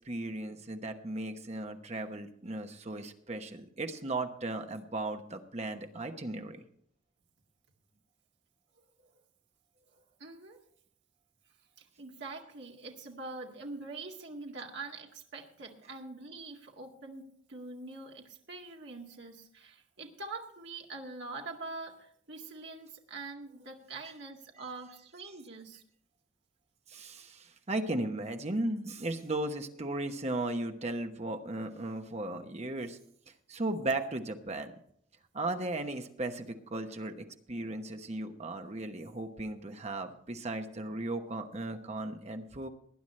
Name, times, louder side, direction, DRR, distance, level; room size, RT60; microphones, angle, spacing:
voice 1, 0.0-6.6 26.9-33.0 33.5-34.7 35.3-42.7, right 2 dB, 35° right, 6 dB, 1.1 m, -36 dB
voice 2, 9.9-10.6 11.8-25.8, right 3 dB, 65° right, 0 dB, 2.0 m, -44 dB
20.0 x 10.0 x 3.3 m, 0.65 s
head